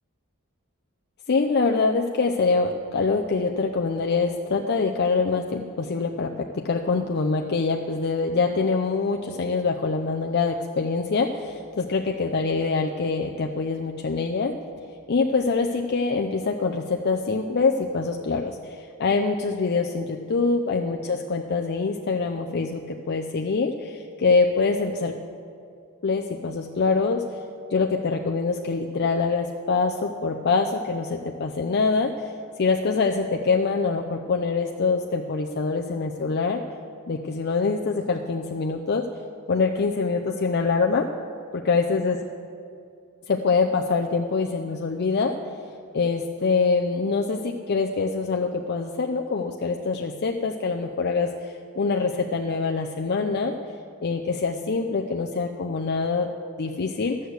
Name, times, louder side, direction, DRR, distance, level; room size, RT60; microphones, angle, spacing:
voice 1, 1.3-14.6 15.1-25.2 26.0-27.2 27.7-36.6 37.1-39.1 39.5-41.1 41.5-42.2 43.3-45.4 45.9-53.6 54.0-56.3 56.6-57.2, left 4 dB, 50° left, 2 dB, 0.5 m, -24 dB
13.5 x 6.5 x 8.0 m, 2.4 s
head